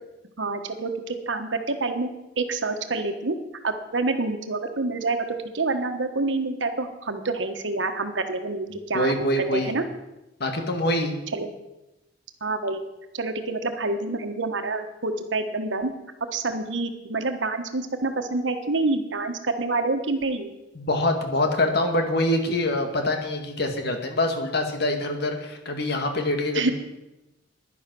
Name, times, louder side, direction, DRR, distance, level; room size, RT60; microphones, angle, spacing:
voice 1, 0.4-2.1 2.4-3.3 3.6-9.8 11.3-11.5 12.4-12.8 13.1-15.9 16.3-20.5 26.5-26.7, right 3 dB, 85° right, 7 dB, 1.3 m, -27 dB
voice 2, 8.7-9.7 10.4-11.1 20.8-26.7, left 1 dB, 60° left, 4 dB, 1.9 m, -25 dB
11.0 x 10.5 x 6.1 m, 0.97 s
head